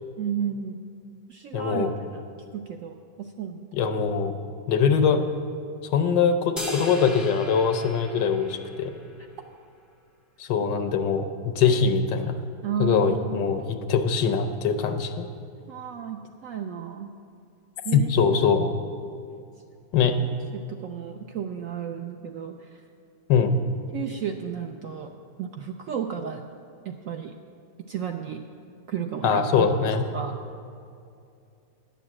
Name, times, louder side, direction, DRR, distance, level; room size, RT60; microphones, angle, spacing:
voice 1, 0.2-0.9 1.3-2.2 2.5-3.9 12.6-13.4 15.7-17.1 17.8-18.5 20.5-22.8 23.9-25.1 25.4-26.5 26.8-27.3 27.9-28.4 28.9-29.7 30.1-30.4, right 8 dB, 75° right, 4 dB, 0.7 m, -33 dB
voice 2, 1.5-1.9 3.7-4.3 4.7-5.2 5.9-8.9 10.4-12.4 12.8-15.2 17.9-18.7 19.9-20.2 23.3-23.6 29.2-30.1, left 6 dB, 90° left, 8 dB, 1.4 m, -22 dB
sound 1, 6.6-9.1, equal, ahead, 0.4 m, -36 dB
10.5 x 7.0 x 7.4 m, 2.5 s
omnidirectional pair, 1.9 m